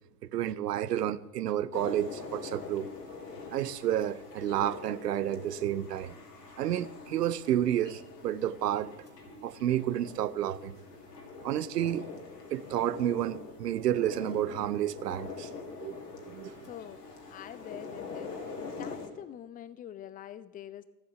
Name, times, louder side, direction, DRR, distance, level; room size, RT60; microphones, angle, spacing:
voice 1, 0.3-2.9 3.5-6.2 6.6-8.9 9.3-10.8 11.4-12.0 12.5-15.5 15.8-16.0 16.2-16.5, right 11 dB, 80° right, 0.7 m, -30 dB
sound 1, 1.7-19.1, left 4 dB, 80° left, 2.1 m, -44 dB
voice 2, 16.6-17.0 17.3-18.4 18.7-20.8, left 10 dB, 20° left, 0.5 m, -45 dB
14.0 x 7.8 x 6.9 m
hypercardioid pair, 90°, 47 cm